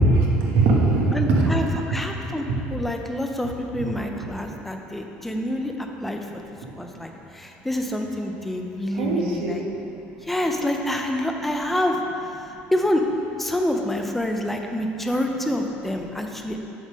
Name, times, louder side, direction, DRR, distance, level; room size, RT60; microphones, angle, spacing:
voice 1, 0.0-1.7 9.0-9.5, right 2 dB, 75° right, -2 dB, 1.3 m, -20 dB
voice 2, 1.1-6.4 6.8-9.6 10.2-12.0 12.7-13.0 13.4-16.6, left 1 dB, 5° left, 3 dB, 0.4 m, -27 dB
7.9 x 3.6 x 6.2 m, 2.8 s
cardioid pair, 175°, 4 cm